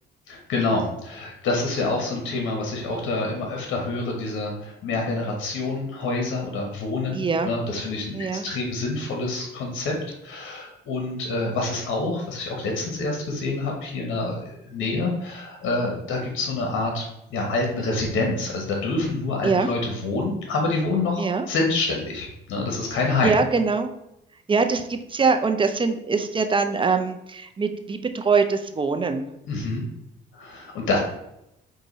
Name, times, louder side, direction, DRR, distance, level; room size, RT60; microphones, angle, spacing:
voice 1, 0.3-9.9 10.2-17.0 17.3-23.3 29.5-29.8 30.3-31.0, left 3 dB, 80° left, 1 dB, 1.0 m, -27 dB
voice 2, 7.1-7.5 8.1-8.5 19.4-19.7 21.2-21.4 23.2-23.9 24.5-29.3, right 4 dB, 25° right, 7 dB, 0.5 m, -23 dB
4.8 x 2.6 x 3.9 m, 0.85 s
cardioid pair, 90°, 20 cm